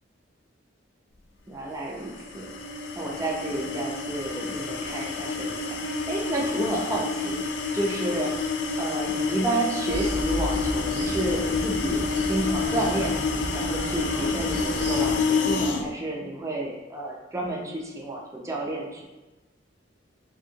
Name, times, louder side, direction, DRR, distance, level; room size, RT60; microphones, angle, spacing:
voice 1, 1.5-2.5 3.0-7.4 7.7-8.3 8.8-13.2 13.5-19.1, right 2 dB, 15° right, -2 dB, 0.3 m, -31 dB
sound 1, 1.9-15.9, left 4 dB, 70° left, 0.3 m, -28 dB
sound 2, 9.9-15.2, equal, 75° right, 0.9 m, -33 dB
2.8 x 2.6 x 2.7 m, 1.1 s
head